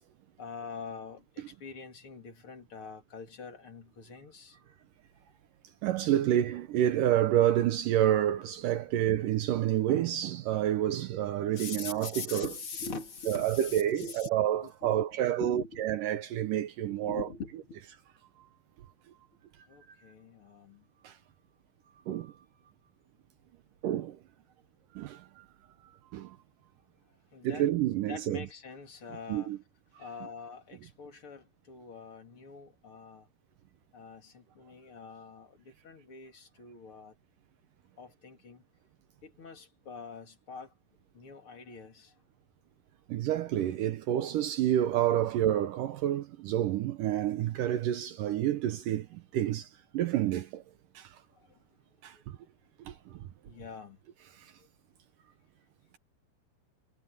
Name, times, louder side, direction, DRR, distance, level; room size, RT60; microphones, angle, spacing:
voice 1, 0.4-4.6 11.5-14.3 14.6-15.8 16.9-17.8 19.7-20.9 27.3-27.7 28.1-29.6 30.0-33.3 33.9-37.1 38.0-38.6 39.2-40.7 41.1-42.1 51.3-51.6 53.5-54.0 54.6-54.7, left 4 dB, 35° left, 3.3 m, -44 dB
voice 2, 5.8-12.5 13.3-17.3 21.0-21.2 22.1-22.3 23.8-24.2 24.9-25.5 26.1-26.4 27.4-28.4 29.3-29.6 43.1-50.6 51.0-51.2 52.0-52.4 52.9-53.3 54.3-54.5, right 12 dB, 70° right, 2.2 m, -29 dB
omnidirectional pair, 4.5 m